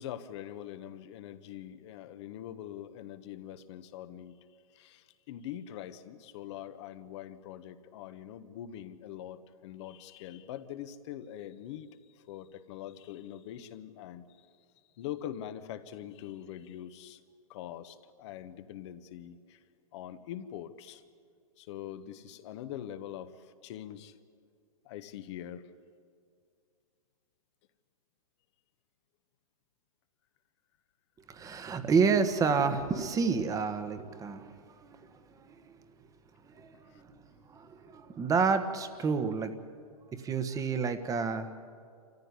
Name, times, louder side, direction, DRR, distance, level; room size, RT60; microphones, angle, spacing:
voice 1, 0.0-4.4 4.7-14.5 15.0-17.2 17.5-19.6 19.9-21.0 21.6-24.2 24.8-25.7 36.9-37.0, left 11 dB, 50° left, 11 dB, 1.4 m, -43 dB
voice 2, 31.3-35.8 36.4-39.5 40.2-41.5, right 5 dB, 20° right, 9 dB, 1.5 m, -30 dB
27.5 x 15.0 x 9.9 m, 2.3 s
hypercardioid pair, 120°, 18 cm